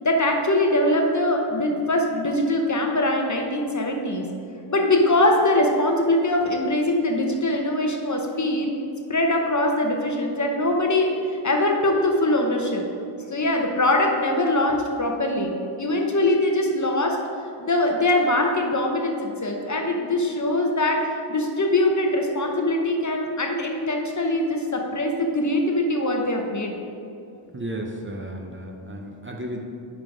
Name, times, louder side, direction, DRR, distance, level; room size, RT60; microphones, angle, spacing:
voice 1, 0.0-4.3 4.7-8.7 9.1-12.8 13.3-15.5 15.8-17.2 17.6-21.0 21.3-26.7, left 1 dB, 35° left, 2 dB, 1.0 m, -22 dB
voice 2, 27.5-29.6, right 1 dB, 25° right, 1 dB, 0.7 m, -33 dB
10.0 x 3.9 x 4.9 m, 2.7 s
wide cardioid pair, 100°, 48 cm